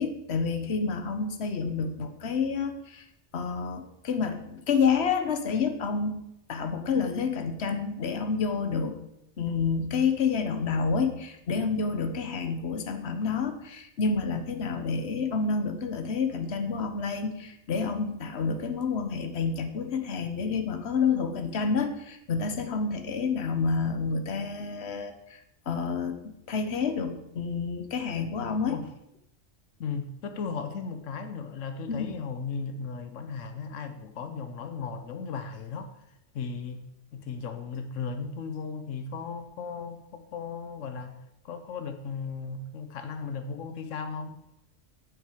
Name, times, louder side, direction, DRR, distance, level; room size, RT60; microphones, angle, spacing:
voice 1, 0.0-3.0 3.3-6.2 6.5-9.0 9.4-25.4 25.7-28.8 31.9-32.1, left 5 dB, 60° left, 1.3 m, -29 dB
voice 2, 29.8-36.0 36.3-36.9 37.1-41.2 41.4-44.4, left 5 dB, 90° left, 1.2 m, -36 dB
8.6 x 6.4 x 8.3 m
omnidirectional pair, 1.3 m